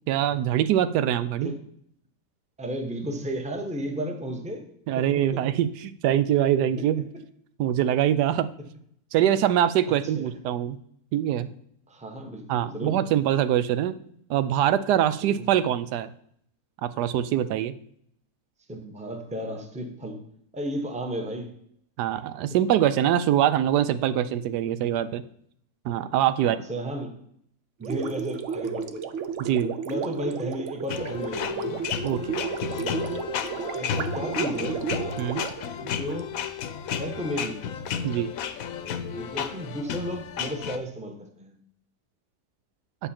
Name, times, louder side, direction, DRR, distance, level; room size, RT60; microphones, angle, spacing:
voice 1, 0.1-1.5 4.9-7.0 7.6-8.5 9.1-10.8 11.1-11.5 12.5-14.0 14.3-16.1 16.8-17.7 22.0-25.2 25.8-26.6 29.4-29.7 32.0-32.4 35.2-35.4 38.0-38.3, right 11 dB, 85° right, 13 dB, 1.2 m, -23 dB
voice 2, 2.6-4.7 4.9-5.5 9.9-10.3 11.9-13.1 15.2-15.4 18.7-20.2 20.5-21.6 26.4-27.2 27.8-29.2 29.8-31.9 33.1-33.2 33.7-34.9 35.8-36.4 36.9-37.7 39.1-41.6, equal, 5° right, 4 dB, 0.8 m, -34 dB
Gurgling, 27.8-36.2, right 7 dB, 60° right, 0.8 m, -33 dB
sound 1, 30.9-40.8, left 7 dB, 65° left, 1.0 m, -32 dB
8.9 x 7.1 x 4.3 m, 0.68 s
omnidirectional pair, 1.7 m